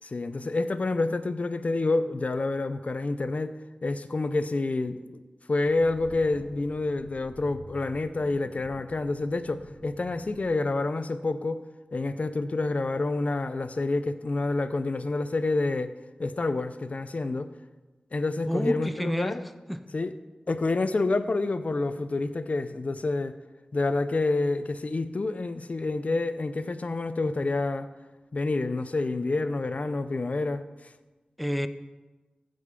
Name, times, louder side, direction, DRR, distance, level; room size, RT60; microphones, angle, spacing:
voice 1, 0.0-3.5 3.8-5.2 5.5-11.6 11.9-15.9 16.2-17.5 18.1-19.4 19.9-20.1 20.5-23.3 23.7-27.9 28.3-30.6, left 2 dB, 50° left, 12 dB, 0.6 m, -28 dB
sound 1, 5.6-10.6, right 1 dB, 25° right, 2.0 m, -49 dB
voice 2, 18.5-19.4 19.7-19.8 31.4-31.7, equal, ahead, 11 dB, 0.6 m, -29 dB
15.0 x 5.3 x 5.2 m, 1.2 s
wide cardioid pair, 70°, 3 cm